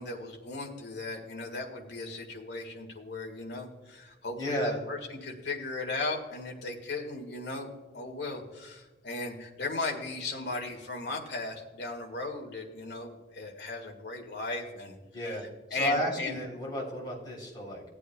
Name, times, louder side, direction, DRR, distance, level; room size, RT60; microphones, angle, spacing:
voice 1, 0.0-15.0 15.2-15.4 15.7-16.4, left 3 dB, 65° left, 2 dB, 1.7 m, -37 dB
voice 2, 4.3-4.9 15.1-17.8, equal, 25° left, -3 dB, 3.5 m, -33 dB
16.5 x 8.2 x 2.3 m, 1.2 s
head